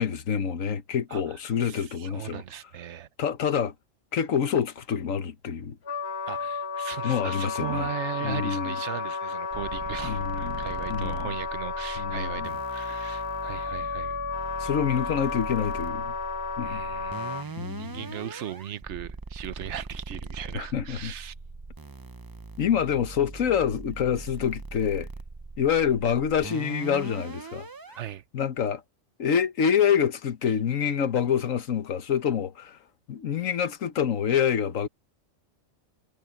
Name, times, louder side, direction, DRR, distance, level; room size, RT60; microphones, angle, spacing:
voice 1, 0.0-2.4 3.2-3.7 4.1-5.8 7.0-7.9 8.2-8.7 10.0-11.3 12.0-12.5 14.6-16.1 16.6-16.8 17.6-18.1 20.5-21.1 22.6-25.1 25.6-27.7 28.3-28.8 29.2-32.8 33.1-34.9, left 8 dB, 85° left, 1.5 m, -26 dB
voice 2, 1.6-3.1 6.3-14.2 16.6-21.3 27.9-28.2, right 11 dB, 65° right, 1.1 m, -38 dB
Wind instrument woodwind instrument, 5.8-17.4, left 5 dB, 55° left, 1.7 m, -33 dB
sound 1, 9.5-28.1, right 3 dB, 25° right, 0.5 m, -41 dB
omnidirectional pair, 1.3 m